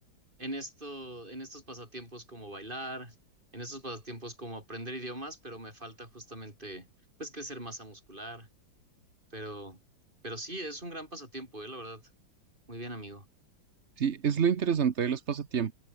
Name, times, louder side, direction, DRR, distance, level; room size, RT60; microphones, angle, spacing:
voice 1, 0.4-3.2 3.5-6.9 7.2-8.5 9.3-9.8 10.2-12.0 12.7-13.3, right 1 dB, 25° right, 8.1 m, -41 dB
voice 2, 14.0-15.7, right 7 dB, 45° right, 1.1 m, -27 dB
omnidirectional pair, 2.2 m